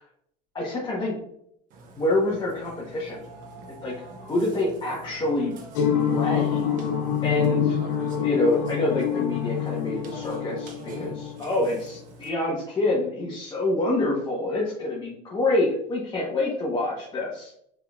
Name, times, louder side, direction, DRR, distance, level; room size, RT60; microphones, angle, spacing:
voice 1, 0.5-1.2 2.0-3.2 3.8-5.5 6.0-6.7 7.2-7.8 8.2-17.5, left 2 dB, 20° left, -5 dB, 1.1 m, -27 dB
Burping eructation, 1.7-12.3, right 2 dB, 40° right, 0.8 m, -44 dB
sound 1, 5.7-12.0, left 8 dB, 70° left, 1.0 m, -26 dB
5.7 x 3.4 x 2.4 m, 0.71 s
supercardioid pair, 130°, 21 cm